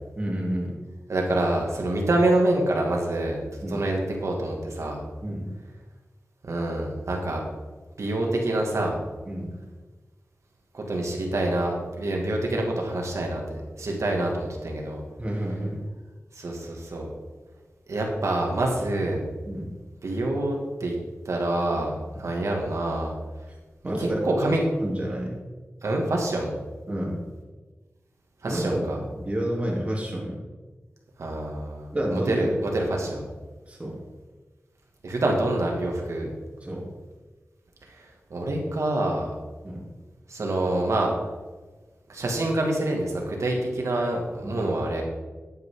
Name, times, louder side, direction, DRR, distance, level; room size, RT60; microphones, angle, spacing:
voice 1, 0.2-0.7 3.6-3.8 5.2-5.5 9.2-9.6 15.2-15.8 19.5-19.7 23.8-24.5 24.8-25.3 26.9-27.2 28.4-30.4 31.9-32.6 33.7-34.0 36.6-36.9 39.6-39.8 44.4-44.6, right 1 dB, 25° right, -3 dB, 3.4 m, -29 dB
voice 2, 1.1-3.4 3.7-5.0 6.4-7.4 8.0-9.0 10.7-15.0 16.3-17.1 17.9-19.2 20.0-20.9 21.3-23.1 24.0-24.6 25.8-26.5 28.4-29.0 31.2-33.3 35.0-36.3 37.9-38.0 38.3-39.3 40.3-41.1 42.1-45.0, right 1 dB, 80° right, 0 dB, 2.3 m, -26 dB
12.0 x 9.0 x 3.9 m, 1.3 s
wide cardioid pair, 80°, 5 cm